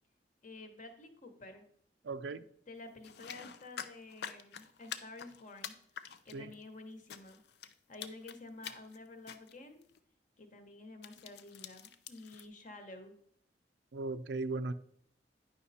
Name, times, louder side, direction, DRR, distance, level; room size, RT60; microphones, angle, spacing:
voice 1, 0.4-1.6 2.3-5.7 6.2-7.4 7.9-9.8 10.4-13.1, left 2 dB, 45° left, 6 dB, 1.2 m, -51 dB
voice 2, 2.0-2.4 6.3-6.5 13.9-14.7, right 3 dB, 80° right, 13 dB, 0.5 m, -37 dB
gore gory blood smash flesh murder, 3.0-6.6 7.1-7.7 8.0-8.4 8.6-9.0 9.3-9.5 9.8-10.0 11.0-12.5, left 8 dB, 65° left, 0.5 m, -46 dB
9.7 x 5.3 x 4.2 m, 0.65 s
head